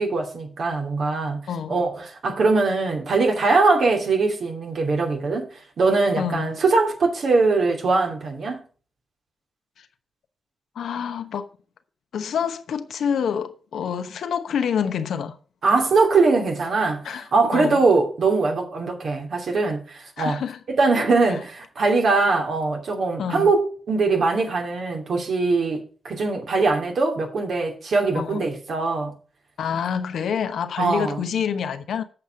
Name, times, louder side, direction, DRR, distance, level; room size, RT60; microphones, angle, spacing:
voice 1, 0.0-1.4 1.7-5.5 5.8-8.6 15.6-17.0 17.3-20.4 20.7-29.1 30.8-31.2, right 3 dB, 70° right, 2.8 m, -21 dB
voice 2, 1.5-1.8 6.2-6.5 9.8-9.9 10.7-11.5 12.1-15.4 17.0-17.8 20.2-20.6 20.9-21.4 23.2-23.5 28.1-28.4 29.6-32.0, left 7 dB, 80° left, 0.9 m, -27 dB
7.9 x 5.5 x 7.7 m
supercardioid pair, 50°, 0 cm